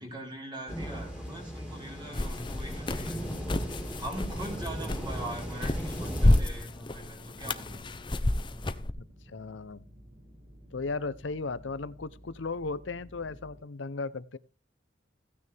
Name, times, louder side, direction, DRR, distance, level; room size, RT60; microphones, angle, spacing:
voice 1, 0.0-3.2 4.0-8.0, right 1 dB, 25° right, 4.4 m, -42 dB
sound 1, 0.7-6.4, equal, 5° right, 4.0 m, -38 dB
sound 2, 1.4-13.6, equal, 50° right, 6.5 m, -53 dB
sound 3, 2.1-8.9, left 1 dB, 25° left, 0.7 m, -30 dB
voice 2, 8.9-9.8 10.7-14.4, left 3 dB, 80° left, 0.7 m, -36 dB
15.5 x 9.6 x 3.4 m
head